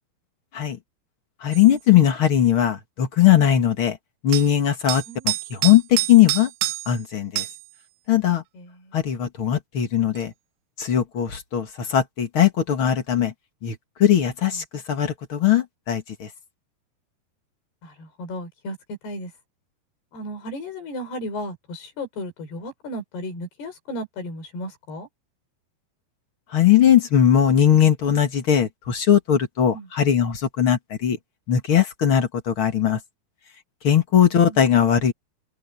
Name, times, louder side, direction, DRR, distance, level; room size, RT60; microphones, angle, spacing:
voice 1, 1.4-4.0 4.2-6.5 6.9-7.4 8.1-8.4 8.9-10.3 10.8-13.3 13.6-16.3 26.5-31.2 31.5-33.0 33.8-35.1, left 10 dB, 45° left, 1.7 m, -19 dB
sound 1, 1.5-1.7 4.3-4.5 4.9-7.0 7.4-7.6 10.2-10.3, right 18 dB, 80° right, 2.9 m, -27 dB
voice 2, 8.5-9.0 14.5-14.6 17.8-18.8 19.0-19.3 20.1-25.1 29.7-29.9, left 1 dB, 70° left, 7.4 m, -35 dB
omnidirectional pair, 4.8 m